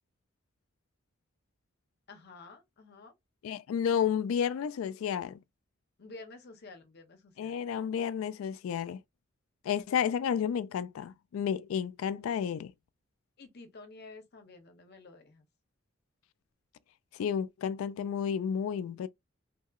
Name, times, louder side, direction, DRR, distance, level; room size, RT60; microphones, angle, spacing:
voice 1, 2.1-3.1 6.0-7.6 13.4-15.5, left 3 dB, 55° left, 0.7 m, -51 dB
voice 2, 3.4-5.4 7.4-9.0 9.6-12.7 17.2-19.1, left 8 dB, 80° left, 0.3 m, -31 dB
2.8 x 2.7 x 2.3 m
head